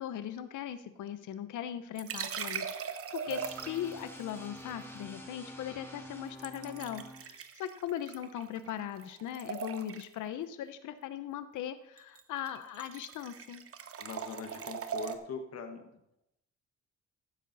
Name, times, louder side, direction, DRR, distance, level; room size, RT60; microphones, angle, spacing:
voice 1, 0.0-13.6, left 10 dB, 80° left, 12 dB, 0.9 m, -39 dB
sound 1, 1.9-4.0 6.4-8.7 9.0-10.2 12.0-12.2 12.5-15.2, right 7 dB, 50° right, 0.9 m, -40 dB
sound 2, 3.3-7.2, equal, 5° left, 2.8 m, -47 dB
voice 2, 14.0-16.2, left 5 dB, 55° left, 5 dB, 1.6 m, -42 dB
14.5 x 7.5 x 4.1 m, 0.84 s
cardioid pair, 90°, 30 cm